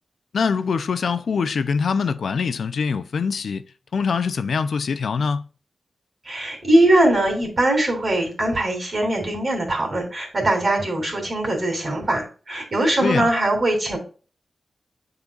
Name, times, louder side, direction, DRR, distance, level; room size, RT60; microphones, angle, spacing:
voice 1, 0.3-3.6 3.9-5.5 13.0-13.3, left 5 dB, 80° left, 0.5 m, -23 dB
voice 2, 6.2-14.0, right 1 dB, 45° right, 3.0 m, -21 dB
9.9 x 3.9 x 2.4 m
wide cardioid pair, 90°, 0 cm